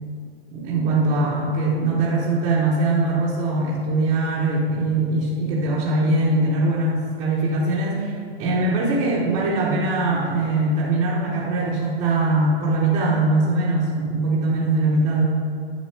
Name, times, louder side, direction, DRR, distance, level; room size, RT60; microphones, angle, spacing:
voice 1, 0.5-15.2, right 2 dB, 15° right, -7 dB, 0.8 m, -21 dB
10.5 x 6.3 x 4.3 m, 2.2 s
hypercardioid pair, 165°, 32 cm